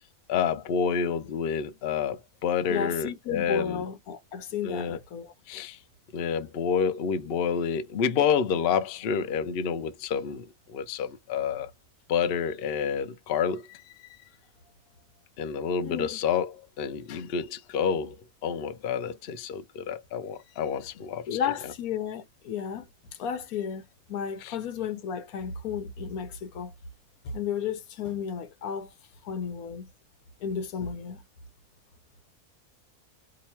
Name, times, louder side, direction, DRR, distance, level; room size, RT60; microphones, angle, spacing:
voice 1, 0.3-3.8 4.6-5.0 5.5-5.8 6.1-11.7 12.1-13.8 15.4-18.2 18.4-21.4 24.4-24.6, left 7 dB, 60° left, 0.6 m, -29 dB
voice 2, 2.7-5.3 15.8-16.2 17.1-17.3 21.3-22.9 23.2-26.7 27.2-28.9 29.2-29.9 30.4-31.2, left 7 dB, 85° left, 1.2 m, -33 dB
2.9 x 2.5 x 4.3 m
omnidirectional pair, 1.5 m